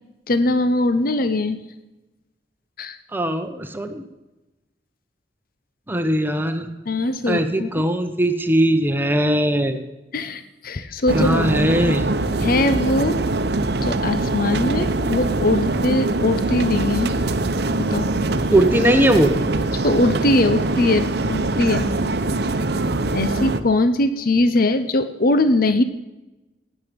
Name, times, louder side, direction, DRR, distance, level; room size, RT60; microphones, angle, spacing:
voice 1, 0.3-1.6 2.8-3.0 6.9-7.7 10.1-11.4 12.4-13.2 13.8-17.1 17.8-18.1 19.7-21.9 23.1-25.8, left 2 dB, 55° left, 10 dB, 0.8 m, -21 dB
voice 2, 3.1-4.1 5.9-6.7 7.3-9.8 11.1-12.1 18.5-19.3, equal, 10° right, 7 dB, 1.0 m, -19 dB
sound 1, 11.1-23.6, right 2 dB, 60° right, 0.8 m, -23 dB
16.0 x 9.9 x 5.3 m, 1.0 s
head